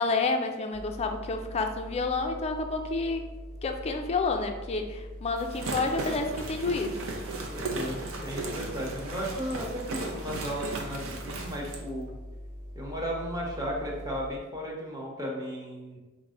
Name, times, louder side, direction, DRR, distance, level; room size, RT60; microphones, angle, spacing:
voice 1, 0.0-3.3 3.6-7.0, left 3 dB, 30° left, 4 dB, 0.3 m, -29 dB
sound 1, 0.7-14.3, equal, 85° right, 0.9 m, -43 dB
sound 2, 5.4-11.8, right 3 dB, 65° right, 0.6 m, -36 dB
voice 2, 7.5-12.1 12.7-16.0, equal, 15° right, -3 dB, 0.8 m, -35 dB
4.6 x 2.1 x 3.7 m, 1.2 s
head